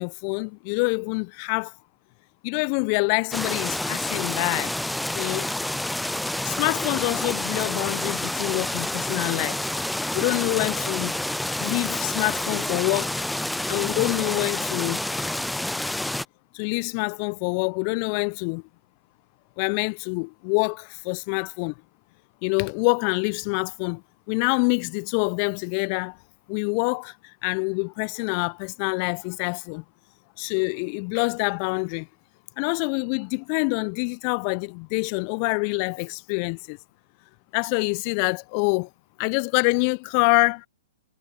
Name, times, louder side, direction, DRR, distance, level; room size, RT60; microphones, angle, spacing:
voice 1, 0.0-1.7 2.4-4.7 5.1-5.5 6.4-9.6 10.1-11.1 11.6-13.2 13.7-15.0 16.5-18.6 19.6-21.7 22.4-24.0 24.3-26.2 26.5-29.8 30.4-32.1 32.6-36.8 37.5-38.9 39.2-40.7, left 37 dB, 40° left, 0.7 m, -26 dB
sound 1, 3.3-16.2, left 1 dB, 5° left, 0.3 m, -28 dB
figure-of-eight pair, 115°, 0 cm